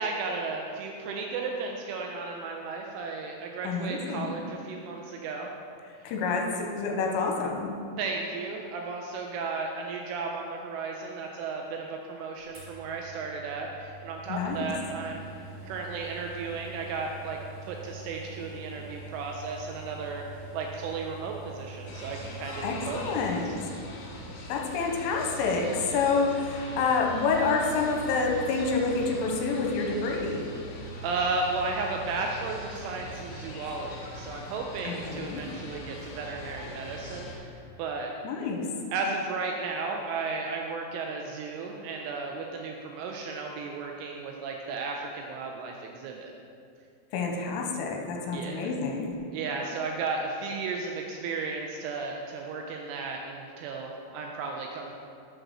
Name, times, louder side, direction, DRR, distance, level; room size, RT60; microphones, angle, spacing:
voice 1, 0.0-5.5 8.0-15.3 15.6-20.2 20.5-23.4 31.0-37.5 37.8-38.1 38.9-46.3 48.3-48.7 49.3-54.9, right 4 dB, 80° right, 1 dB, 2.9 m, -34 dB
voice 2, 3.6-4.3 6.0-7.7 14.3-14.7 22.6-23.5 24.5-30.4 34.8-35.4 38.2-38.6 47.1-49.1, left 4 dB, 85° left, 1 dB, 3.2 m, -28 dB
sound 1, 12.5-23.4, right 3 dB, 50° right, 1.8 m, -45 dB
sound 2, 21.9-37.4, equal, 70° left, 3.5 m, -41 dB
7.6 x 5.1 x 6.0 m, 2.5 s
omnidirectional pair, 5.9 m